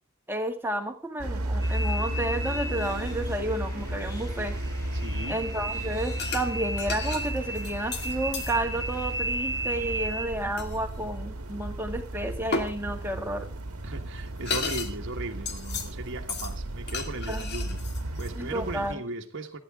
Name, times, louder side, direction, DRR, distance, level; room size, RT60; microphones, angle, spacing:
voice 1, 0.3-4.6 5.3-13.5 17.3-17.5 18.4-19.0, right 1 dB, 10° right, 2.1 m, -31 dB
sound 1, 1.2-18.9, right 1 dB, 80° right, 1.5 m, -34 dB
sound 2, 1.6-10.2, right 1 dB, 15° left, 4.4 m, -35 dB
voice 2, 4.9-5.4 13.8-17.9 18.2-19.6, right 2 dB, 55° right, 1.5 m, -37 dB
sound 3, 6.2-6.5 6.8-8.5 10.6-10.8 12.5-12.7 13.8-13.9 14.2-14.9 15.2-15.9 16.3-16.5 16.9-18.3, left 4 dB, 50° left, 2.3 m, -33 dB
28.0 x 9.6 x 3.6 m
head